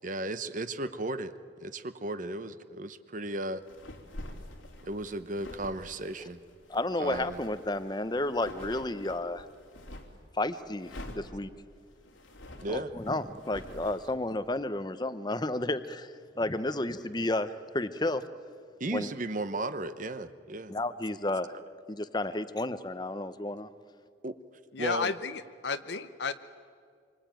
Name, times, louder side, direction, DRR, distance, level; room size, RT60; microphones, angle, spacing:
voice 1, 0.0-1.3 1.6-3.6 4.8-6.4 7.0-7.4 12.6-12.9 18.8-20.7 24.2-24.4 24.8-25.1, right 2 dB, 40° right, 11 dB, 0.9 m, -35 dB
sound 1, 3.6-10.2 10.8-14.1, left 1 dB, 90° left, 3.2 m, -47 dB
voice 2, 6.7-9.5 10.4-11.5 12.7-16.1 16.4-18.2 18.9-19.1 20.7-21.5 21.9-23.7, left 2 dB, 20° left, 12 dB, 0.9 m, -32 dB
voice 3, 24.7-26.3, left 5 dB, 60° left, 10 dB, 0.8 m, -32 dB
26.5 x 24.5 x 9.1 m, 2.1 s
head